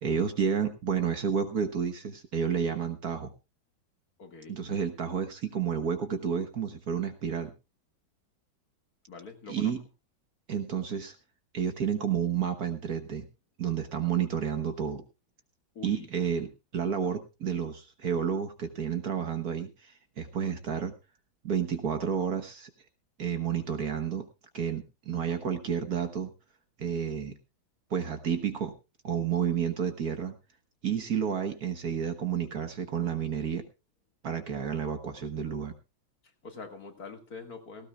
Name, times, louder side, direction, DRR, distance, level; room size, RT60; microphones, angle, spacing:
voice 1, 0.0-3.3 4.5-7.5 9.5-9.8 10.5-11.2 11.5-13.3 13.6-15.0 15.8-20.9 21.4-22.7 23.2-24.3 24.5-26.3 26.8-27.4 27.9-28.7 29.0-30.4 30.8-33.6 34.2-35.7, right 7 dB, 55° right, 7 dB, 1.6 m, -30 dB
voice 2, 4.2-4.6 9.1-9.7 15.7-16.1 36.4-37.9, left 4 dB, 50° left, 4 dB, 2.4 m, -44 dB
18.0 x 16.5 x 2.3 m, 0.29 s
omnidirectional pair, 2.1 m